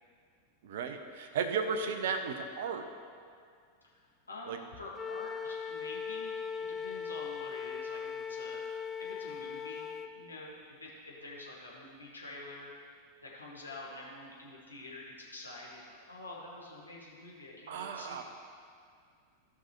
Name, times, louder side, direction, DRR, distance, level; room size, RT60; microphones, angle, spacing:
voice 1, 0.6-2.9 4.5-4.6 17.7-18.2, right 5 dB, 55° right, 7 dB, 0.8 m, -34 dB
voice 2, 4.3-8.6 9.0-9.9 10.2-10.5 10.8-12.7 13.2-18.2, left 2 dB, 80° left, -5 dB, 1.8 m, -47 dB
Wind instrument woodwind instrument, 4.9-10.1, left 6 dB, 15° left, 0.5 m, -39 dB
16.0 x 5.9 x 3.1 m, 2.2 s
figure-of-eight pair, 90°, 0 cm